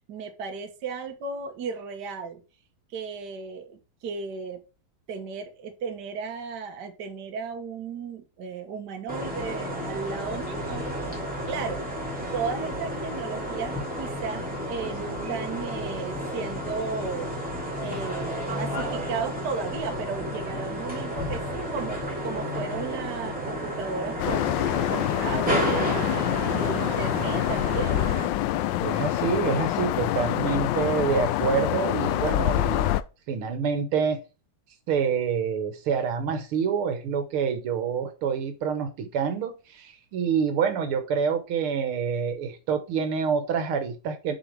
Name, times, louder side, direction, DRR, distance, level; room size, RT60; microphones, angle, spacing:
voice 1, 0.1-2.4 2.9-4.6 5.1-10.9 11.5-11.8 12.3-17.3 17.8-24.4 24.9-28.0, right 5 dB, 55° right, 6 dB, 1.7 m, -35 dB
sound 1, 9.1-28.2, equal, 5° right, 2.8 m, -31 dB
sound 2, 24.2-33.0, left 14 dB, 75° left, 1.1 m, -26 dB
voice 2, 28.8-32.9 33.3-34.2 34.9-44.3, right 6 dB, 85° right, 8 dB, 2.0 m, -27 dB
6.8 x 5.2 x 4.7 m, 0.31 s
omnidirectional pair, 2.3 m